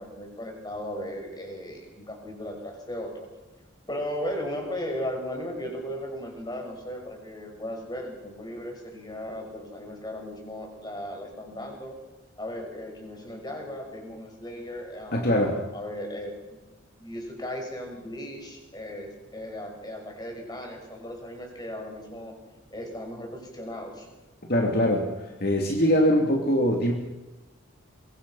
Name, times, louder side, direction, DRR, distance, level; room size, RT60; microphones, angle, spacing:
voice 1, 0.0-3.3 3.9-12.0 12.4-16.3 17.0-22.4 22.7-24.1, left 1 dB, 20° left, 2 dB, 5.9 m, -36 dB
voice 2, 15.1-15.6 24.5-25.1 25.4-26.9, equal, 50° left, 1 dB, 2.9 m, -22 dB
24.0 x 23.5 x 5.8 m, 1.1 s
head